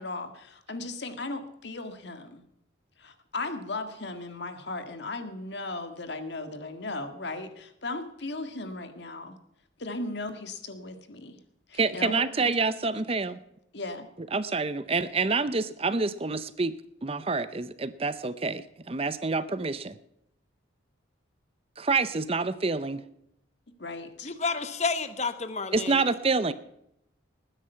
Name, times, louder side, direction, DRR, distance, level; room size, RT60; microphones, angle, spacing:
voice 1, 0.0-2.4 3.0-9.4 9.8-11.4 11.7-12.2 13.7-14.1 23.8-24.3, left 2 dB, 60° left, 8 dB, 1.8 m, -36 dB
voice 2, 11.8-13.4 14.3-16.8 17.0-19.9 21.8-23.0 25.7-26.5, right 4 dB, 30° right, 14 dB, 0.6 m, -27 dB
voice 3, 24.2-26.0, left 4 dB, 35° left, 11 dB, 1.2 m, -30 dB
20.0 x 10.0 x 5.7 m, 0.77 s
head